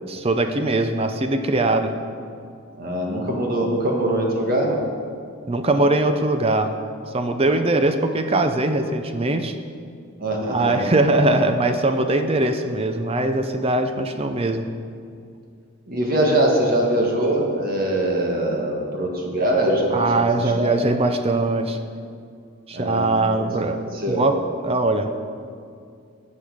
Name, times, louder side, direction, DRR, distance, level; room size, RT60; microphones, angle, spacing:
voice 1, 0.1-1.9 5.5-6.7 7.1-9.5 10.5-14.7 19.9-21.8 22.7-25.1, right 2 dB, 30° right, 8 dB, 0.5 m, -21 dB
voice 2, 2.8-4.8 10.2-11.1 15.9-20.9 22.7-23.5 24.0-24.2, right 1 dB, 45° right, 0 dB, 1.7 m, -22 dB
10.5 x 7.5 x 6.5 m, 2.3 s
head